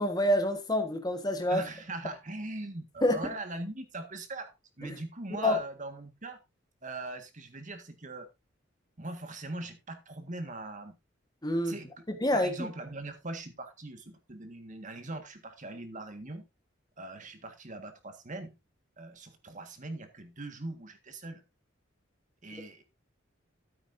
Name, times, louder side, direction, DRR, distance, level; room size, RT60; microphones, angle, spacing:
voice 1, 0.0-1.6 3.0-3.3 5.4-5.6 11.4-11.7 12.1-12.7, left 1 dB, 20° left, 1.4 m, -27 dB
voice 2, 1.5-6.4 6.8-8.3 9.0-11.0 11.6-12.0 12.3-16.5 17.0-18.5 19.0-21.4 22.4-22.8, right 2 dB, 40° right, 1.8 m, -41 dB
13.5 x 8.8 x 2.7 m
head